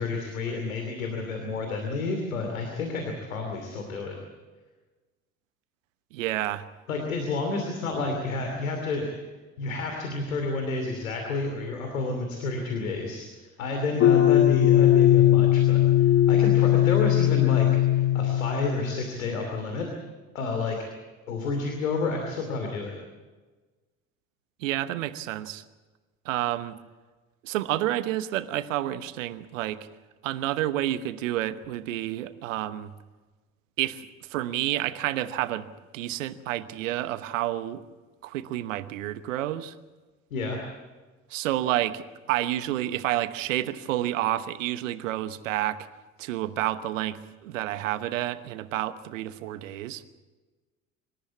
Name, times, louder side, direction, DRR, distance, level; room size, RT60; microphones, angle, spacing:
voice 1, 0.0-4.2 6.9-9.1 9.6-13.3 13.6-17.7 17.9-19.9 20.3-20.8 21.3-23.0 40.3-40.6, left 3 dB, 75° left, 3 dB, 2.8 m, -30 dB
voice 2, 6.1-6.6 24.6-25.6 26.2-26.8 27.4-29.9 30.2-32.9 33.8-34.0 34.3-35.7 35.9-37.8 38.2-39.7 41.3-45.9 46.2-50.0, right 14 dB, 70° right, 14 dB, 1.1 m, -29 dB
sound 1, 14.0-19.2, left 13 dB, 30° left, 0.7 m, -20 dB
25.5 x 14.0 x 8.4 m, 1.3 s
figure-of-eight pair, 60°, 41 cm